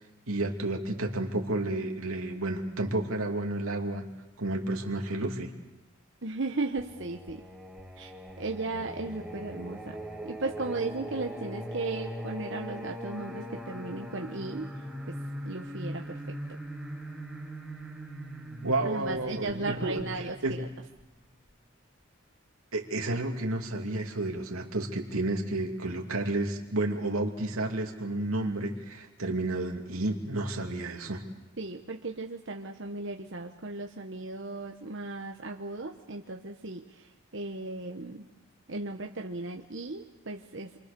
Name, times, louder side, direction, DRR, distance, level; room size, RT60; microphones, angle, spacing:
voice 1, 0.3-4.0 4.4-5.5 18.6-20.6 22.7-31.2, right 2 dB, 90° right, 2 dB, 2.8 m, -31 dB
voice 2, 6.2-7.4 8.0-8.1 8.4-10.0 10.2-14.7 15.1-15.2 15.4-16.4 18.8-20.7 31.6-36.8 37.3-38.3 38.7-40.7, right 3 dB, 60° right, 3 dB, 1.1 m, -36 dB
Singing, 6.8-21.5, equal, ahead, 2.1 m, -41 dB
28.0 x 24.0 x 6.9 m, 1.0 s
head